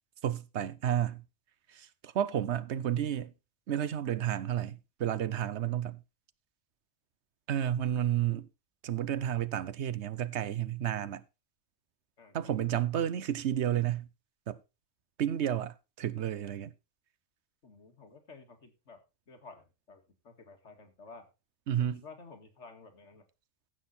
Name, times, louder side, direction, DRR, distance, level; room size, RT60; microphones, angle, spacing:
voice 1, 0.2-1.2 1.7-3.3 3.7-6.0 7.5-8.5 8.8-11.2 12.3-14.1 14.5-14.6 15.2-16.7 21.7-22.0, right 10 dB, 70° right, 1.0 m, -31 dB
voice 2, 12.2-12.8 17.6-19.0 19.3-21.3 21.8-23.2, left 4 dB, 80° left, 2.3 m, -53 dB
15.0 x 6.4 x 4.2 m
omnidirectional pair, 1.2 m